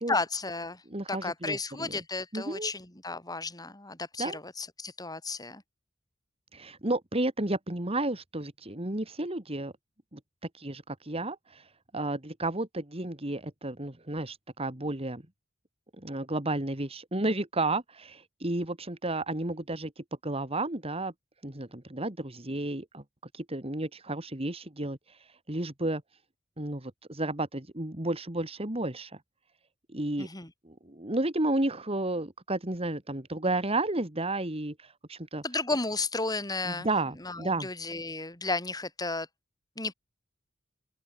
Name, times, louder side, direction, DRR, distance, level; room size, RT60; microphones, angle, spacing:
voice 1, 0.0-0.8 1.1-5.6 30.2-30.5 35.4-36.9 37.2-39.3 39.8-39.9, left 3 dB, 20° left, 7.0 m, -33 dB
voice 2, 0.9-2.0 2.3-2.7 4.2-4.4 6.5-9.7 10.1-10.2 10.5-11.7 11.9-15.2 16.0-21.1 21.4-23.0 23.3-25.2 25.5-26.0 26.6-29.1 29.9-30.3 30.6-35.4 36.7-37.7, right 2 dB, 30° right, 2.6 m, -32 dB
open air
head